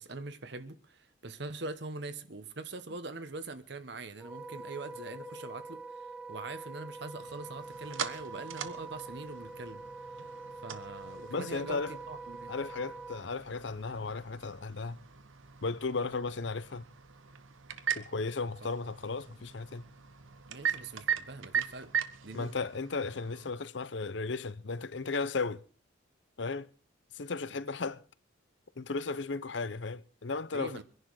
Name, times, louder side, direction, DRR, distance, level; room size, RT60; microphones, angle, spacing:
voice 1, 0.0-9.8 10.6-12.5 20.5-21.9 22.2-22.5 27.5-27.6 30.5-30.8, right 3 dB, 60° right, 1.1 m, -43 dB
Wind instrument woodwind instrument, 4.2-13.2, right 3 dB, 5° right, 1.6 m, -45 dB
sound 1, 7.2-23.5, right 8 dB, 90° right, 1.2 m, -40 dB
voice 2, 11.3-12.0 12.5-15.0 15.6-16.8 18.0-19.8 22.3-25.6 26.4-26.7 27.1-28.0 28.8-30.8, left 4 dB, 65° left, 0.7 m, -35 dB
23.0 x 11.0 x 4.8 m
head